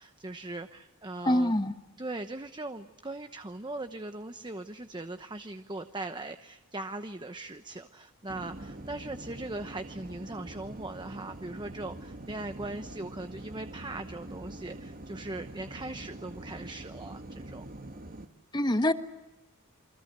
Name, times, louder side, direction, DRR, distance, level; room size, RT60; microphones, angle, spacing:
voice 1, 0.0-1.6 2.0-17.7, right 2 dB, 20° right, 8 dB, 1.0 m, -40 dB
voice 2, 1.2-1.7 18.5-18.9, left 1 dB, 20° left, 9 dB, 1.4 m, -24 dB
sound 1, 8.3-18.3, right 1 dB, 40° right, 1.6 m, -44 dB
29.0 x 24.5 x 6.8 m, 0.96 s
head